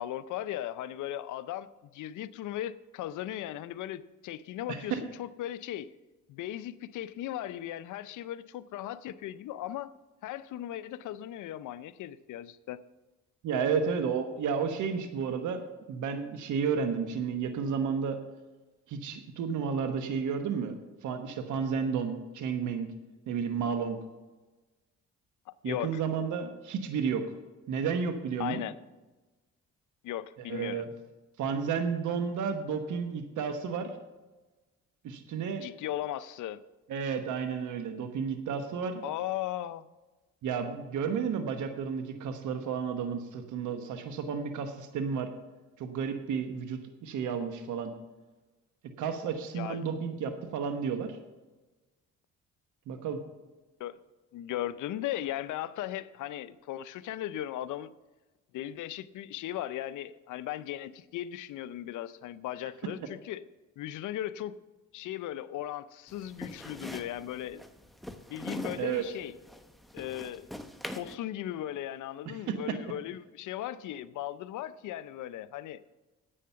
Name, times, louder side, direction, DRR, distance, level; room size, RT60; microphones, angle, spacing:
voice 1, 0.0-5.9 6.3-9.9 10.2-12.8 25.5-26.0 28.4-28.7 30.0-30.8 35.6-36.6 39.0-39.9 49.5-49.8 53.8-54.0 54.3-57.9 58.5-63.4 63.8-64.6 64.9-67.6 68.3-69.3 69.9-70.5 70.9-75.8, left 12 dB, 80° left, 15 dB, 0.6 m, -37 dB
voice 2, 4.7-5.0 13.4-15.6 15.9-18.2 18.9-22.9 23.3-24.0 25.6-27.3 27.7-28.6 30.5-30.9 31.4-33.9 35.0-35.6 36.9-39.0 40.4-45.3 45.8-47.9 49.0-51.2 52.9-53.2 68.8-69.0 72.5-72.6, right 6 dB, 80° right, 7 dB, 1.1 m, -32 dB
sound 1, 66.1-71.2, equal, ahead, 0.9 m, -43 dB
10.0 x 8.6 x 5.7 m, 1.2 s
cardioid pair, 90°, 30 cm